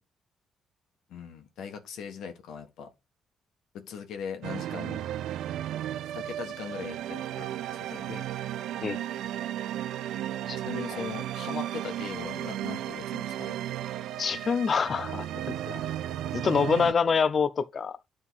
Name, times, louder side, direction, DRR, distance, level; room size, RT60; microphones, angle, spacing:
voice 1, 1.1-2.9 3.7-5.0 6.0-8.3 10.6-13.5, left 6 dB, 80° left, 1.3 m, -40 dB
sound 1, 4.4-16.9, right 12 dB, 85° right, 0.4 m, -34 dB
voice 2, 14.2-15.8 16.3-18.0, left 6 dB, 45° left, 0.5 m, -26 dB
9.4 x 3.8 x 4.0 m
cardioid pair, 90°, 0 cm